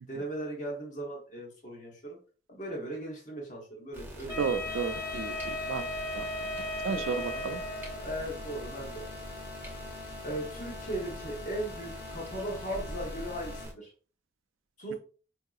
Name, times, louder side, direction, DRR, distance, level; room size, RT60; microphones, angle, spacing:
voice 1, 0.1-2.2 2.5-4.5 6.9-7.4 8.0-9.1 10.2-13.9 14.8-14.9, right 1 dB, 40° left, -1 dB, 1.0 m, -38 dB
sound 1, 3.9-13.7, right 1 dB, 10° right, 0.6 m, -44 dB
Wind instrument woodwind instrument, 4.3-8.1, left 1 dB, 20° left, 1.3 m, -36 dB
voice 2, 4.4-5.9 6.1-6.3 6.8-7.6, right 6 dB, 85° right, 10 dB, 0.4 m, -32 dB
sound 2, 4.6-13.6, left 4 dB, 55° left, 1.2 m, -45 dB
4.6 x 2.7 x 2.3 m, 0.38 s
head